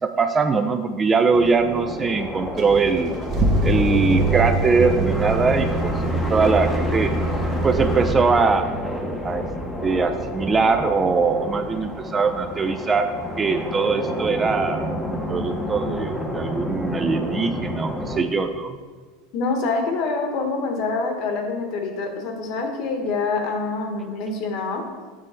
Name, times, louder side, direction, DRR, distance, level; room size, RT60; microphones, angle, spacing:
voice 1, 0.0-3.2 3.6-5.9 6.3-7.1 7.6-8.7 9.2-9.5 9.8-14.8 15.3-18.8, right 4 dB, 20° right, 8 dB, 0.4 m, -21 dB
sound 1, 1.3-18.2, equal, 5° left, 0.7 m, -30 dB
sound 2, 2.6-8.1, right 1 dB, 35° right, 0.9 m, -23 dB
voice 2, 19.3-24.8, left 3 dB, 50° left, 4 dB, 1.1 m, -26 dB
7.4 x 3.1 x 5.6 m, 1.4 s
supercardioid pair, 120°, 0 cm